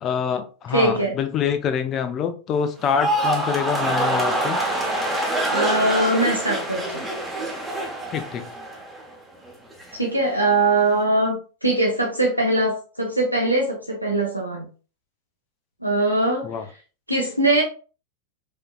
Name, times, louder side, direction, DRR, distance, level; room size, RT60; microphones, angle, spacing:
voice 1, 0.0-4.6 8.1-8.5 16.4-16.6, left 7 dB, 30° left, 8 dB, 0.5 m, -25 dB
voice 2, 0.7-1.1 5.5-7.0 9.9-11.4 11.6-14.7 15.8-16.5 17.1-17.6, right 2 dB, 90° right, -2 dB, 0.7 m, -21 dB
sound 1, 2.8-9.1 9.4-9.9, right 1 dB, 5° right, 1.1 m, -25 dB
4.8 x 2.8 x 2.3 m, 0.36 s
figure-of-eight pair, 90°, 0 cm